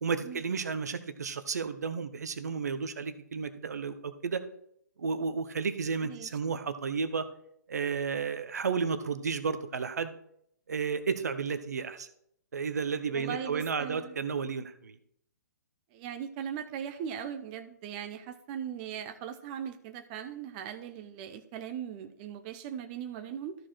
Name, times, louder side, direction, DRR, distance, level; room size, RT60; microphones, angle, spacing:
voice 1, 0.0-4.4 5.0-7.3 7.7-10.1 10.7-12.1 12.5-14.9, right 5 dB, 65° right, 11 dB, 0.9 m, -32 dB
voice 2, 13.1-14.2 15.9-23.6, right 8 dB, 30° right, 8 dB, 0.7 m, -39 dB
13.5 x 4.9 x 4.4 m, 0.70 s
figure-of-eight pair, 125°, 9 cm